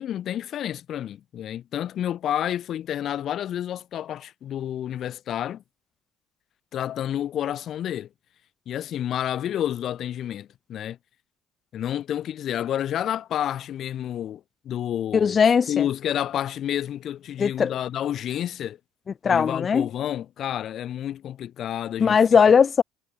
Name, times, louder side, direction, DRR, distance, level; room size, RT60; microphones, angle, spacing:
voice 1, 0.0-5.6 6.7-8.1 8.7-11.0 11.7-15.4 15.7-18.8 19.2-22.2, left 11 dB, 55° left, 3.9 m, -29 dB
voice 2, 15.1-15.8 17.4-17.7 19.2-19.9 22.0-22.8, left 6 dB, 40° left, 0.5 m, -18 dB
hypercardioid pair, 70°, 0 cm